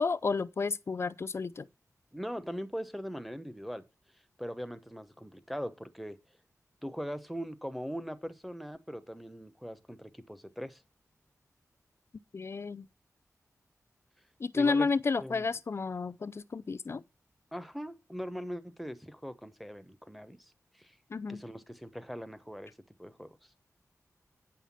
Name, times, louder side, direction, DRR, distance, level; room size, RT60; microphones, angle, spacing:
voice 1, 0.0-1.7 12.3-12.9 14.4-17.0 21.1-21.4, left 4 dB, 45° left, 0.4 m, -31 dB
voice 2, 2.1-3.8 4.4-6.2 6.8-10.8 14.5-14.9 15.2-15.5 17.5-21.0 21.3-22.7 23.0-23.5, equal, ahead, 0.9 m, -40 dB
9.1 x 5.7 x 7.3 m
wide cardioid pair, 120°, 6 cm